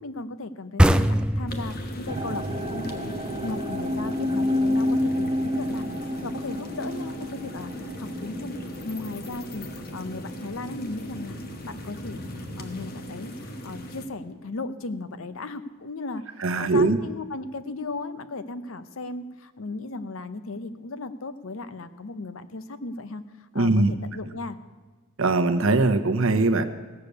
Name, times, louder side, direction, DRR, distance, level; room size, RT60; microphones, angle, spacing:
voice 1, 0.0-3.1 3.4-8.5 8.8-11.4 11.6-12.2 12.6-16.2 16.5-23.2 23.5-24.6, left 3 dB, 70° left, 13 dB, 0.7 m, -36 dB
sound 1, 0.8-4.2, equal, 5° right, 0.3 m, -23 dB
sound 2, 1.5-14.1, equal, 45° left, 1.1 m, -39 dB
sound 3, 2.1-13.2 13.5-14.1 14.7-14.8, left 1 dB, 25° right, 0.8 m, -30 dB
voice 2, 16.4-17.0 23.5-23.9 25.2-26.7, right 2 dB, 65° right, 8 dB, 0.8 m, -21 dB
16.0 x 6.7 x 8.1 m, 1.4 s
head